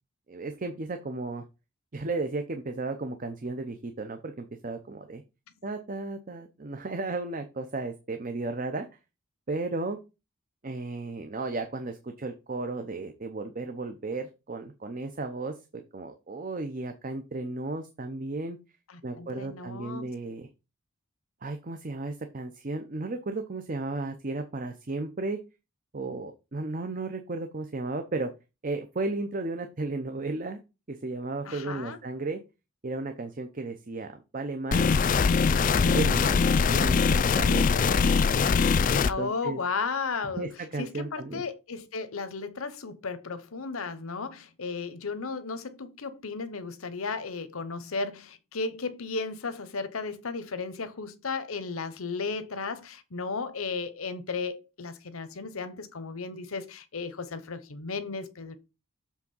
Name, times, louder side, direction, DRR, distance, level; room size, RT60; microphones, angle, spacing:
voice 1, 0.3-1.4 1.9-5.2 5.6-8.9 9.5-10.0 10.6-18.6 19.0-20.5 21.4-25.4 25.9-28.3 28.6-30.6 30.9-32.4 32.8-35.1 35.8-36.4 36.7-38.0 38.9-39.6 40.4-41.4, right 3 dB, 40° right, 0.6 m, -34 dB
voice 2, 18.9-20.1 31.4-32.0 39.1-40.5 40.8-58.6, left 4 dB, 85° left, 0.9 m, -34 dB
sound 1, 34.7-39.1, left 5 dB, 40° left, 0.3 m, -22 dB
7.3 x 3.5 x 5.4 m
head